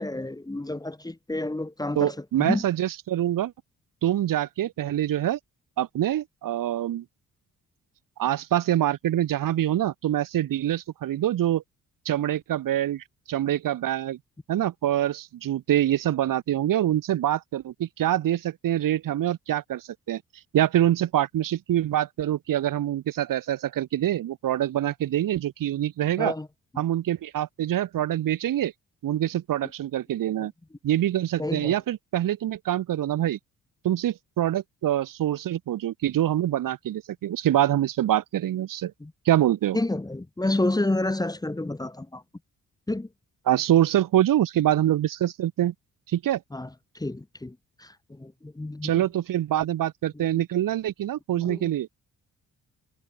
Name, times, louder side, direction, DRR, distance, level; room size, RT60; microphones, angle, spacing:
voice 1, 0.0-2.6 26.2-26.5 30.4-30.5 31.4-31.7 39.0-39.1 39.7-42.2 42.9-43.1 46.5-46.7 46.9-49.0 50.1-50.2 51.4-51.7, left 2 dB, 10° left, 1.1 m, -30 dB
voice 2, 2.0-3.5 4.0-5.4 5.8-7.0 8.2-11.6 12.1-14.2 14.5-20.2 20.5-26.3 26.8-28.7 29.0-30.5 30.8-33.4 33.8-38.9 39.3-39.8 43.5-45.7 46.1-46.4 48.8-51.9, right 12 dB, 75° right, 1.9 m, -25 dB
cardioid pair, 80°, 33 cm